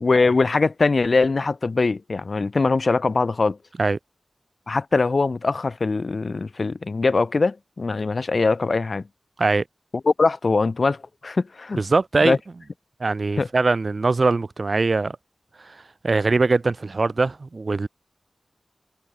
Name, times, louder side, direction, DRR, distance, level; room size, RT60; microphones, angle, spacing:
voice 1, 0.0-3.6 4.7-9.0 10.1-11.8 12.2-12.4 13.4-13.5, left 3 dB, 60° left, 0.7 m, -22 dB
voice 2, 11.7-12.4 13.0-15.2 15.6-17.9, right 3 dB, 55° right, 1.2 m, -22 dB
wide cardioid pair, 90°, 0 cm